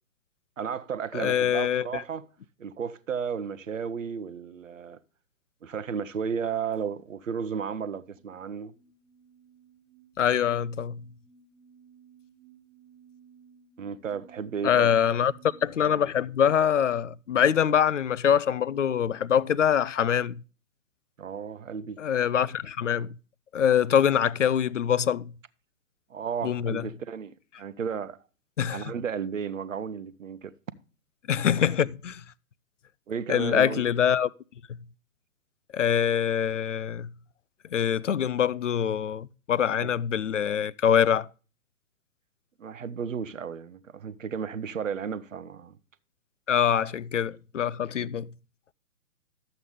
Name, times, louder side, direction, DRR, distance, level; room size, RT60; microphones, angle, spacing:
voice 1, 0.6-2.3 2.6-5.0 5.6-8.7 13.8-14.9 21.2-22.0 26.1-28.2 28.7-30.5 33.1-33.9 39.8-39.9 42.6-45.8 48.0-48.1, right 6 dB, 55° right, 0.8 m, -33 dB
voice 2, 1.1-2.0 10.2-11.0 14.6-15.3 15.6-20.4 22.0-23.1 23.5-25.3 26.4-26.8 28.6-28.9 31.3-32.2 33.3-34.3 35.7-37.1 37.7-41.3 46.5-48.3, left 8 dB, 55° left, 0.5 m, -24 dB
sound 1, 7.6-15.7, right 7 dB, 5° left, 0.8 m, -57 dB
11.5 x 7.9 x 3.2 m
figure-of-eight pair, 130°, 45 cm